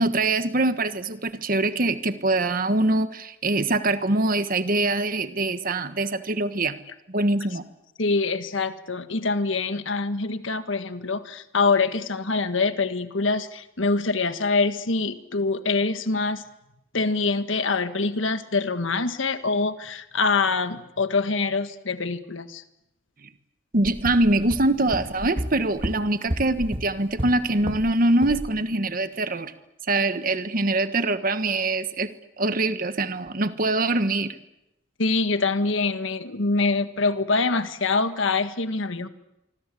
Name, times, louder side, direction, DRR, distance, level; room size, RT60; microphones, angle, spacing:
voice 1, 0.0-6.8 7.1-7.6 23.7-29.5 29.9-32.1 32.4-34.4, right 2 dB, 45° right, 10 dB, 1.4 m, -23 dB
voice 2, 8.0-16.4 16.9-22.6 35.0-39.1, left 3 dB, 75° left, 10 dB, 1.6 m, -25 dB
sound 1, 23.8-27.9 28.2-28.5, equal, 25° right, 1.6 m, -32 dB
25.5 x 25.0 x 8.4 m, 0.91 s
head